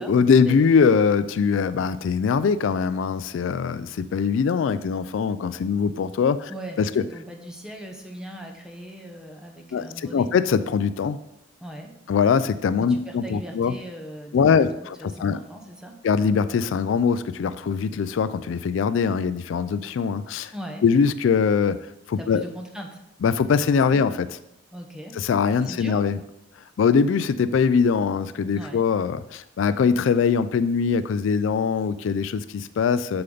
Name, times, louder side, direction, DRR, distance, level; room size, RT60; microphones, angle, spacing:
voice 1, 0.0-6.5 6.8-6.9 9.7-11.2 12.1-13.8 14.3-15.4 16.0-20.5 20.8-21.8 22.1-22.4 23.2-24.3 25.1-26.2 26.8-33.2, left 6 dB, 70° left, 13 dB, 0.3 m, -22 dB
voice 2, 6.5-10.3 11.6-12.0 12.8-14.7 15.0-16.0 20.5-20.9 22.2-23.0 24.7-25.2 25.6-26.0 28.5-28.9, right 1 dB, 5° right, 2 dB, 0.9 m, -39 dB
7.0 x 6.5 x 3.9 m, 0.84 s
head